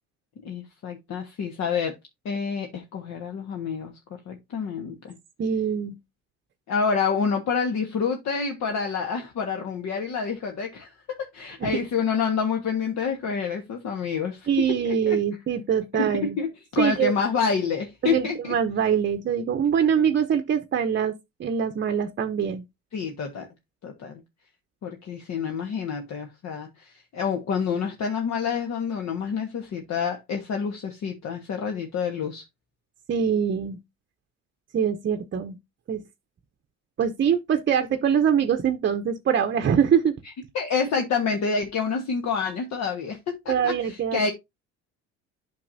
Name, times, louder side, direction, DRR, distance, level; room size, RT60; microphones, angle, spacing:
voice 1, 0.4-1.9 2.2-3.9 4.3-5.1 6.7-14.5 14.8-15.2 15.9-18.6 22.9-23.5 23.8-24.2 24.8-32.4 40.5-43.2 43.4-44.3, left 5 dB, 55° left, 1.4 m, -28 dB
voice 2, 5.4-5.9 11.6-11.7 14.5-16.4 16.8-17.1 18.0-21.1 21.4-22.6 33.1-33.8 34.7-35.6 35.9-36.0 37.0-40.1 43.5-44.2, right 8 dB, 35° right, 0.8 m, -23 dB
8.4 x 6.0 x 2.6 m
supercardioid pair, 75°, 32 cm